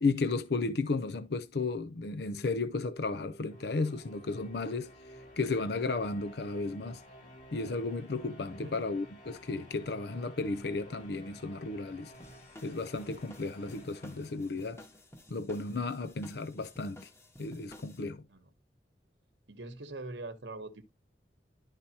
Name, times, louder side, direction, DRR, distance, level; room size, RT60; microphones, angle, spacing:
voice 1, 0.0-4.9 5.4-7.0 7.5-12.1 12.6-14.8 15.3-17.1 17.4-18.2, left 3 dB, 65° left, 0.6 m, -34 dB
sound 1, 1.9-15.1, equal, 45° left, 2.9 m, -53 dB
sound 2, 12.1-18.0, left 1 dB, 15° left, 1.3 m, -54 dB
voice 2, 19.5-20.9, right 2 dB, 80° right, 1.0 m, -43 dB
12.0 x 4.9 x 2.8 m
head